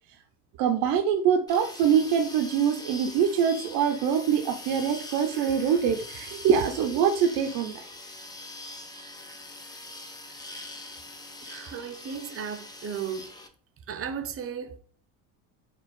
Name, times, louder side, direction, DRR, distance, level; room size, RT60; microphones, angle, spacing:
voice 1, 0.6-7.8, right 7 dB, 70° right, 0.7 m, -24 dB
sound 1, 1.5-13.5, left 2 dB, 10° left, 0.5 m, -43 dB
voice 2, 11.4-13.4 13.9-14.8, right 7 dB, 35° right, 0.7 m, -35 dB
4.5 x 2.4 x 4.2 m
supercardioid pair, 105°, 40 cm